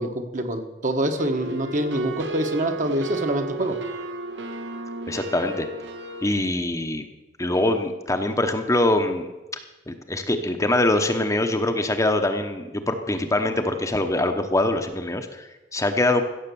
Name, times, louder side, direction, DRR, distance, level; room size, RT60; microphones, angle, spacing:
voice 1, 0.0-3.8, right 1 dB, 45° right, 5 dB, 1.3 m, -25 dB
sound 1, 1.2-6.3, right 3 dB, 75° right, 1.2 m, -34 dB
voice 2, 5.1-5.7 6.2-7.1 7.4-9.3 9.9-16.2, left 1 dB, 15° left, 5 dB, 0.9 m, -23 dB
15.5 x 7.2 x 7.0 m, 1.1 s
head